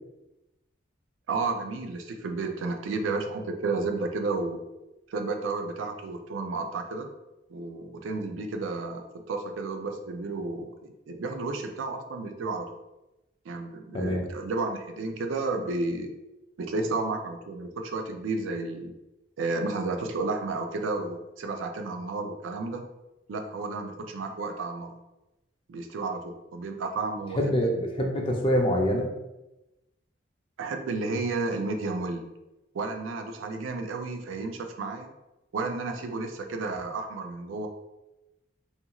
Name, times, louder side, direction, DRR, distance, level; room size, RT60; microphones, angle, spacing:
voice 1, 1.3-4.6 5.1-7.1 7.5-12.7 13.5-16.1 16.6-18.9 19.4-22.9 23.3-25.0 25.7-27.5 30.6-32.3 32.7-35.1 35.5-37.7, right 3 dB, 90° right, 5 dB, 0.4 m, -32 dB
voice 2, 27.4-29.1, equal, 25° left, 1 dB, 0.4 m, -25 dB
2.4 x 2.3 x 2.8 m, 0.98 s
head